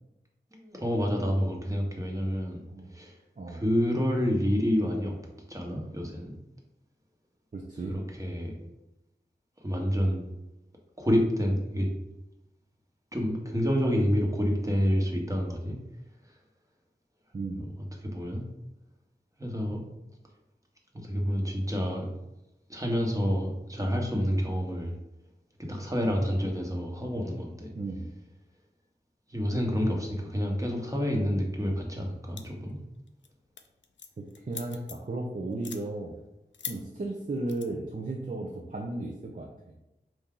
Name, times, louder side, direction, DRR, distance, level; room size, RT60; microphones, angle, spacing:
voice 1, 0.5-2.6 2.9-3.2 3.5-5.2 5.5-6.3 7.9-8.7 9.6-10.2 11.0-11.9 13.1-15.8 18.0-18.4 19.4-19.8 21.0-22.1 22.7-24.9 25.6-27.7 29.3-32.8, equal, 15° right, 0 dB, 1.1 m, -28 dB
voice 2, 7.5-8.0 17.3-17.7 27.7-28.1 34.5-36.2 36.7-39.8, right 2 dB, 45° right, -1 dB, 0.6 m, -35 dB
sound 1, 32.4-32.7 33.1-33.3 33.6-35.1 35.5-35.8 36.5-36.8 37.5-37.6, left 6 dB, 80° left, 0.4 m, -40 dB
4.6 x 2.6 x 3.7 m, 0.92 s
wide cardioid pair, 45°, 19 cm